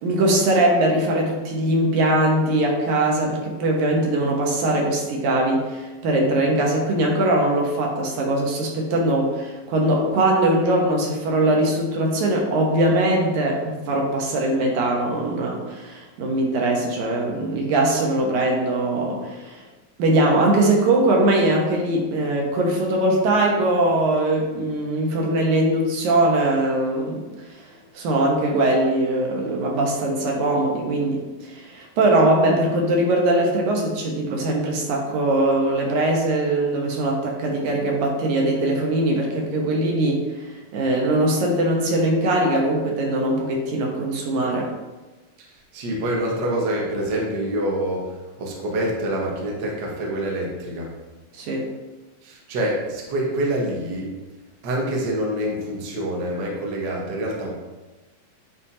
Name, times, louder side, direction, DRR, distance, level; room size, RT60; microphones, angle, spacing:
voice 1, 0.0-19.6 20.0-27.2 27.9-44.7 51.3-51.7, right 1 dB, 70° right, 0 dB, 2.2 m, -21 dB
voice 2, 45.7-50.9 52.2-54.1 54.6-57.5, right 1 dB, 90° right, -2 dB, 0.9 m, -26 dB
9.9 x 4.2 x 2.8 m, 1.2 s
omnidirectional pair, 4.0 m